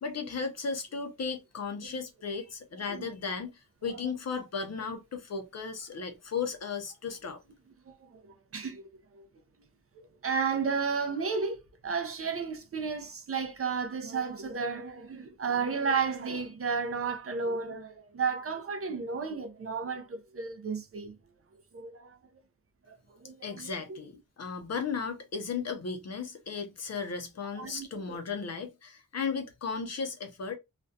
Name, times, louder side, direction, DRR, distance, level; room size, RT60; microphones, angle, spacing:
voice 1, 0.0-3.5 3.8-7.4 23.4-30.6, left 5 dB, 50° left, 0.5 m, -35 dB
voice 2, 3.9-4.4 7.9-8.9 9.1-9.3 10.0-21.2 21.7-22.2 22.8-24.0 27.5-28.2, right 5 dB, 40° right, 0.4 m, -33 dB
2.4 x 2.1 x 2.5 m
wide cardioid pair, 170°, 34 cm